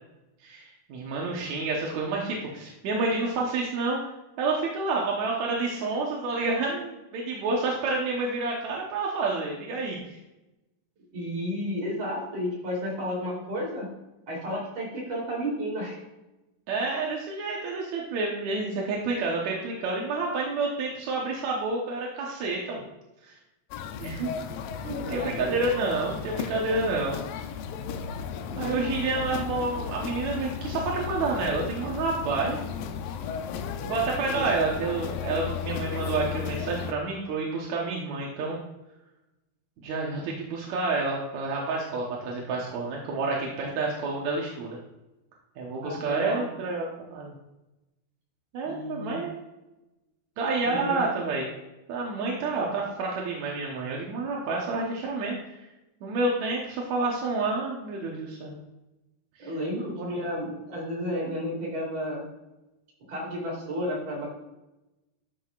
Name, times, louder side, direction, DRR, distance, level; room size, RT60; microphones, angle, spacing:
voice 1, 0.4-4.0 4.4-10.0 16.7-22.8 23.2-23.3 24.0-24.3 24.9-27.2 28.6-32.6 33.8-38.6 39.8-44.8 45.6-47.3 48.5-49.4 50.4-51.5 51.9-55.4 56.0-58.6 59.4-59.5 60.0-60.1, right 3 dB, 65° right, -2 dB, 2.0 m, -29 dB
voice 2, 11.1-13.9 14.3-16.0 24.8-25.5 28.5-29.2 34.3-34.5 45.8-46.5 48.6-49.2 50.6-51.0 59.4-62.2 63.1-64.3, equal, 45° right, -4 dB, 4.2 m, -32 dB
sound 1, 23.7-36.9, left 7 dB, 80° left, 2.2 m, -35 dB
12.5 x 6.4 x 2.4 m, 0.98 s
omnidirectional pair, 4.3 m